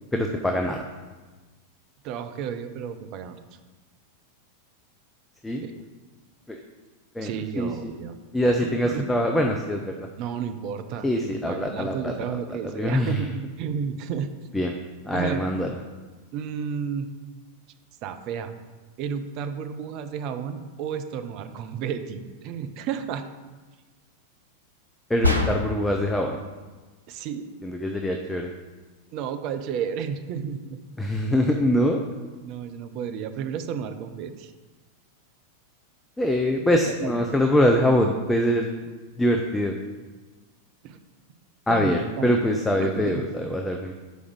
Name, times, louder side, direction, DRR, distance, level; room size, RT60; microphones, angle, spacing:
voice 1, 0.1-0.8 5.4-5.6 6.5-6.6 7.1-7.9 8.3-10.0 11.0-12.1 12.5-13.2 14.5-14.7 15.0-15.7 25.1-26.4 27.6-28.5 31.0-32.0 36.2-38.7 39.2-39.8 41.7-44.0, equal, 5° left, 2 dB, 0.5 m, -24 dB
voice 2, 2.0-3.4 5.6-5.8 7.2-8.1 8.6-9.1 10.2-14.3 15.1-15.5 16.3-17.1 18.0-18.5 19.0-23.2 27.1-27.4 29.1-30.8 31.9-32.0 32.4-34.5 36.9-37.2 40.8-41.0 41.7-42.4 42.8-43.2, right 7 dB, 40° right, 8 dB, 0.6 m, -32 dB
sound 1, 25.2-26.0, left 2 dB, 85° right, 0.7 m, -23 dB
5.2 x 4.9 x 6.1 m, 1.3 s
figure-of-eight pair, 90°, 0 cm